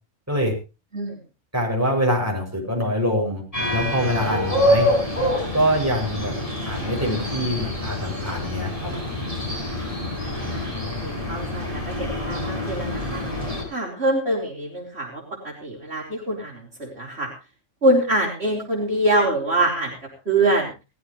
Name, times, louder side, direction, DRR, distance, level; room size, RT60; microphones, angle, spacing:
voice 1, 1.5-3.4 3.7-4.9 5.5-6.3 6.6-8.9, equal, 10° right, -1 dB, 7.2 m, -24 dB
sound 1, 3.5-13.6, left 1 dB, 25° left, 6.9 m, -26 dB
voice 2, 10.2-13.2 13.7-17.3 17.8-20.7, right 1 dB, 55° right, -2 dB, 4.8 m, -24 dB
19.0 x 15.5 x 3.2 m, 0.31 s
omnidirectional pair, 1.3 m